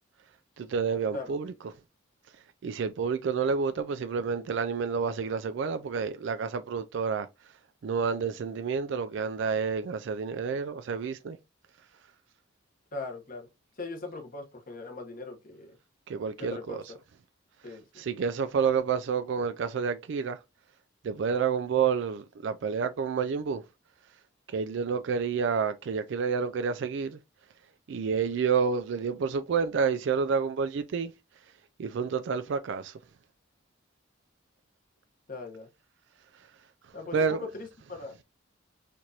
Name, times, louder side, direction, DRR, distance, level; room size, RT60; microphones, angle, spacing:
voice 1, 0.6-1.5 2.6-7.3 7.8-11.4 16.1-16.8 18.0-20.4 21.0-23.6 24.5-27.2 27.9-31.1 31.8-33.0 37.1-37.4, right 6 dB, 65° right, 0.3 m, -29 dB
voice 2, 12.9-13.5 13.8-15.8 16.4-17.0 17.6-17.8 35.3-35.7 36.9-38.2, left 3 dB, 45° left, 1.1 m, -40 dB
4.5 x 2.5 x 2.7 m
head